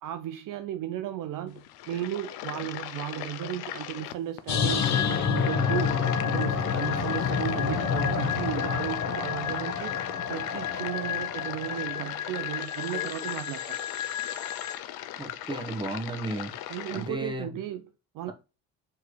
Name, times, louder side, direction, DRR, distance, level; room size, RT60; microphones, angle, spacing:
voice 1, 0.0-5.9 6.2-13.8 16.7-18.3, right 12 dB, 55° right, 0.5 m, -35 dB
sound 1, 1.5-17.1, left 12 dB, 65° left, 0.6 m, -39 dB
sound 2, 4.5-14.8, left 7 dB, 45° left, 0.9 m, -29 dB
voice 2, 15.2-16.5 16.9-17.5, right 2 dB, 10° right, 1.3 m, -34 dB
4.6 x 3.1 x 3.2 m
hypercardioid pair, 65°, 39 cm